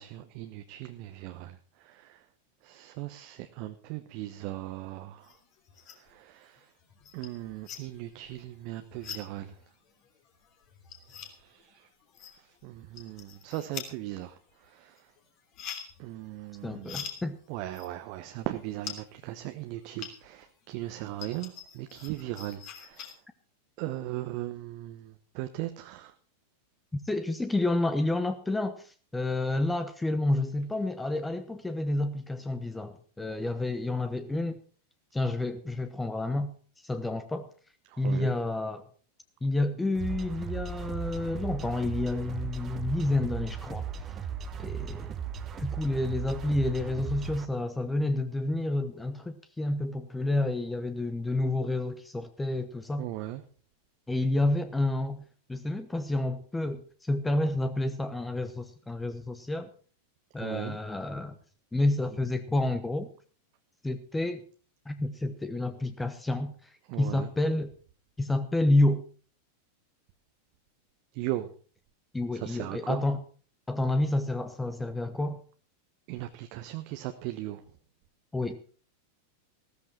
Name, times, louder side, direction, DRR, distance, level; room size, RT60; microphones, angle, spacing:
voice 1, 0.0-2.2 2.6-5.3 5.9-6.7 7.1-9.6 11.1-11.9 12.2-15.1 16.0-17.1 17.5-23.1 23.8-26.1 37.9-38.3 53.0-53.4 60.4-60.8 66.9-67.3 71.1-71.5 72.3-73.0 76.1-77.6, right 15 dB, 45° right, 8 dB, 1.0 m, -38 dB
sound 1, 5.2-6.2 6.5-20.5 20.8-23.1, left 8 dB, 40° left, 3.0 m, -45 dB
voice 2, 16.6-17.4 27.0-34.6 35.1-36.5 36.8-37.5 38.0-38.8 39.4-43.9 44.6-45.1 45.6-53.1 54.1-55.2 55.5-59.7 60.3-61.4 61.7-63.1 63.8-64.4 64.9-67.7 68.2-69.0 72.1-73.2 73.7-75.4 78.3-78.6, left 2 dB, 10° left, 10 dB, 1.0 m, -29 dB
sound 2, 39.9-47.5, right 8 dB, 25° right, 1.3 m, -37 dB
15.5 x 13.5 x 4.3 m, 0.40 s
figure-of-eight pair, 90°, 0 cm